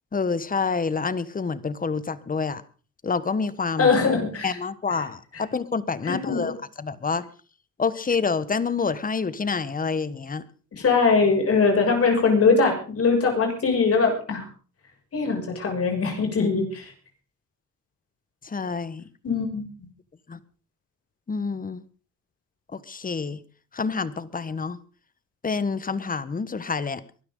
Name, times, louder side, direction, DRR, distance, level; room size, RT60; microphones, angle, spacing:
voice 1, 0.1-2.6 3.0-3.9 4.4-7.2 7.8-10.4 18.4-19.0 20.3-20.4 21.3-21.8 22.7-23.4 23.7-24.8 25.4-27.0, left 5 dB, 30° left, 16 dB, 1.2 m, -27 dB
voice 2, 3.8-4.6 5.3-5.4 6.0-6.6 10.8-14.5 15.1-16.9 19.2-19.6, left 4 dB, 50° left, 2 dB, 6.6 m, -21 dB
23.0 x 13.0 x 3.8 m, 0.38 s
cardioid pair, 90°, 30 cm